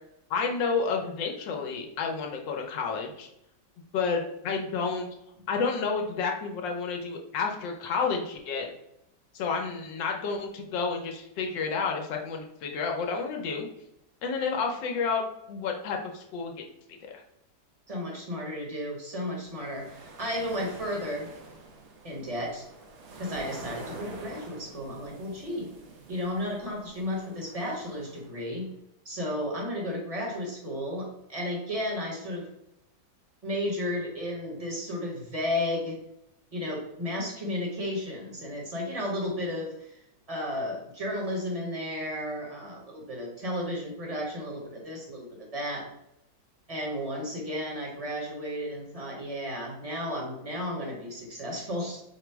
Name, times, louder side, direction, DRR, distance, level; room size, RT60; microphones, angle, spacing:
voice 1, 0.3-3.3 3.9-5.1 5.5-8.7 9.3-13.7 14.2-16.5 17.0-17.2, left 5 dB, 90° left, 2 dB, 1.5 m, -30 dB
voice 2, 17.9-21.3 22.0-22.6 23.2-25.7 26.1-28.7 29.0-32.5 33.4-36.0 36.5-40.0 40.3-45.9 46.7-52.0, left 1 dB, 25° right, -1 dB, 0.8 m, -33 dB
sound 1, 19.3-28.5, right 3 dB, 70° right, 0.6 m, -47 dB
5.1 x 2.0 x 4.5 m, 0.81 s
omnidirectional pair, 1.9 m